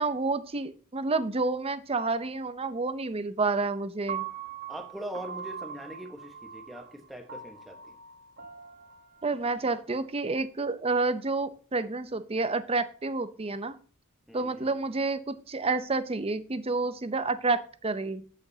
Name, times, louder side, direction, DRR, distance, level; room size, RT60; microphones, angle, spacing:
voice 1, 0.0-4.2 9.2-13.8 14.3-18.2, right 3 dB, 25° right, 12 dB, 0.6 m, -29 dB
Piano, 4.1-10.3, right 8 dB, 45° right, 1.2 m, -42 dB
voice 2, 4.7-8.0 14.3-14.8, equal, ahead, 3 dB, 1.2 m, -42 dB
15.5 x 5.2 x 2.8 m, 0.41 s
head